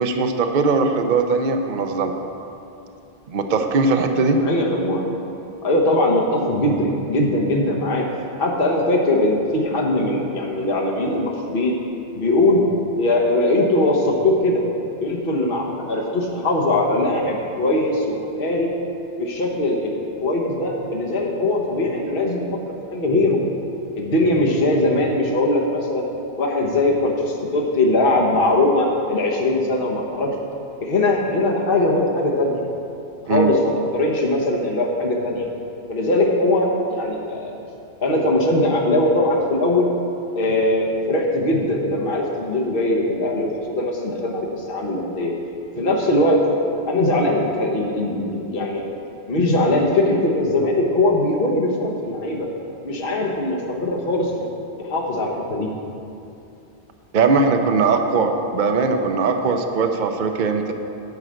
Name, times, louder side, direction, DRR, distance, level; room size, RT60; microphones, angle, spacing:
voice 1, 0.0-2.1 3.3-4.4 33.3-33.5 57.1-60.7, right 4 dB, 50° right, 5 dB, 0.8 m, -20 dB
voice 2, 4.4-5.3 5.6-8.0 8.4-11.7 12.1-12.7 13.0-14.6 15.0-18.7 19.2-19.9 20.2-22.5 22.9-23.4 24.0-26.0 26.4-30.3 30.8-32.5 33.2-35.4 35.9-37.6 38.0-39.9 40.3-45.3 45.8-46.4 46.9-48.8 49.3-52.5 52.8-54.5 54.8-55.7, left 1 dB, 55° left, -1 dB, 1.3 m, -20 dB
10.5 x 4.9 x 7.8 m, 2.7 s
omnidirectional pair, 1.1 m